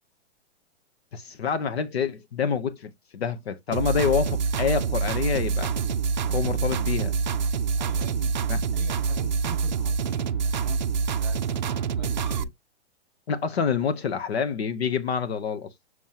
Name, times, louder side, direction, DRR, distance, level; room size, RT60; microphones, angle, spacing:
voice 1, 1.1-5.7 6.3-7.1 8.5-8.6 13.3-15.7, left 6 dB, 60° left, 0.9 m, -27 dB
sound 1, 3.7-12.4, right 5 dB, 40° right, 0.5 m, -26 dB
voice 2, 7.8-8.3 8.7-10.8 11.2-12.5, right 2 dB, ahead, 4.8 m, -45 dB
7.2 x 6.2 x 2.9 m
hypercardioid pair, 180°, 35 cm